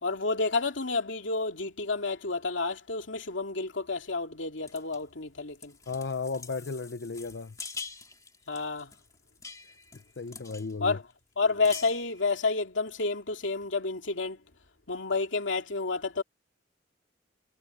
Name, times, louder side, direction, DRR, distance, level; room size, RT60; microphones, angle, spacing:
voice 1, 0.0-5.7 8.5-8.9 10.8-11.0 11.4-14.4 14.9-16.2, left 3 dB, 90° left, 2.6 m, -30 dB
sound 1, 4.7-5.0 5.5-10.7 11.1-11.2 11.4-12.4, left 4 dB, 20° left, 2.1 m, -45 dB
voice 2, 5.9-7.5 10.2-11.0, left 4 dB, 65° left, 0.7 m, -34 dB
head